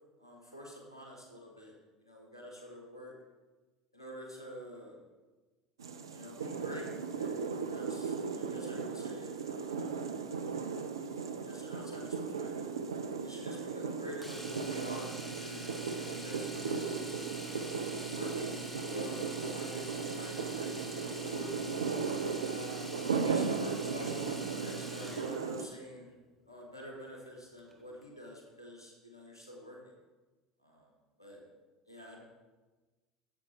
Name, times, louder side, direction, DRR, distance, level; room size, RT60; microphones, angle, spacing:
voice 1, 0.2-1.7 2.0-3.1 3.9-5.0 6.1-7.4 7.7-9.9 10.2-10.5 11.3-12.8 13.2-17.0 17.4-21.5 22.5-26.1 26.5-29.9 30.6-30.9 31.2-31.4 31.9-32.2, equal, 90° left, -1 dB, 1.3 m, -47 dB
sound 1, 5.8-25.7, right 5 dB, 75° right, 0.5 m, -37 dB
Domestic sounds home sounds, 14.2-25.5 27.6-27.7 28.0-28.1, right 1 dB, 5° left, 1.7 m, -45 dB
11.0 x 7.4 x 3.0 m, 1.2 s
figure-of-eight pair, 70°, 2 cm